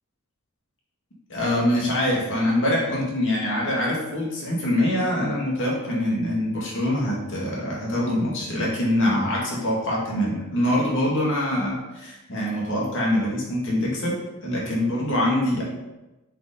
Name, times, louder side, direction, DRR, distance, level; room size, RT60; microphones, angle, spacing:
voice 1, 1.3-14.2 14.4-15.6, left 1 dB, 60° left, -4 dB, 2.2 m, -24 dB
7.6 x 5.3 x 3.9 m, 1.0 s
head